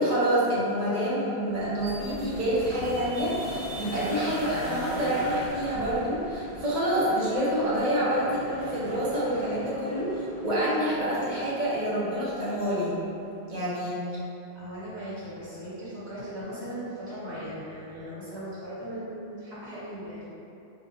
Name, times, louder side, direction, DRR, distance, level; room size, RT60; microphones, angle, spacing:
voice 1, 0.0-13.0 13.5-14.1, equal, 40° right, -9 dB, 1.0 m, -27 dB
sound 1, 1.5-6.7 7.8-7.9, left 1 dB, 70° left, 1.2 m, -40 dB
sound 2, 1.8-13.4, right 1 dB, 90° right, 1.1 m, -44 dB
voice 2, 14.5-20.4, equal, 70° right, -11 dB, 1.4 m, -38 dB
4.6 x 2.4 x 2.8 m, 2.8 s
omnidirectional pair, 1.1 m